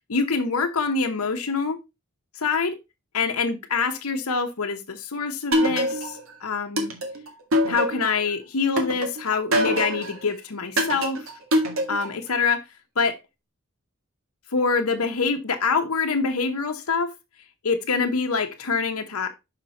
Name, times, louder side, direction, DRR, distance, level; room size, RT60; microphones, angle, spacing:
voice 1, 0.1-1.8 2.4-2.8 3.1-6.9 7.7-11.3 11.9-12.6 13.0-13.2 14.5-17.1 17.6-19.3, left 4 dB, 90° left, 0.9 m, -25 dB
sound 1, 5.5-6.3 6.8-8.2 8.8-10.2 10.8-12.2, equal, 70° right, 1.8 m, -24 dB
5.8 x 5.7 x 4.1 m
head